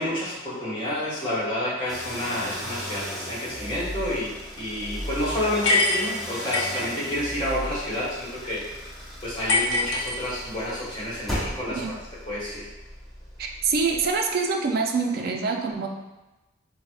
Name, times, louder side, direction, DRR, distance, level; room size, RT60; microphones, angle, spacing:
voice 1, 0.0-8.6 9.2-11.8 12.3-12.6, left 1 dB, 25° left, -9 dB, 1.1 m, -29 dB
sound 1, 1.9-14.3, equal, ahead, 0.5 m, -37 dB
sound 2, 5.6-6.9 9.5-10.6, left 2 dB, 65° left, 0.6 m, -24 dB
voice 2, 13.4-15.9, right 4 dB, 50° right, 2 dB, 0.3 m, -25 dB
4.6 x 2.0 x 2.4 m, 1.1 s
head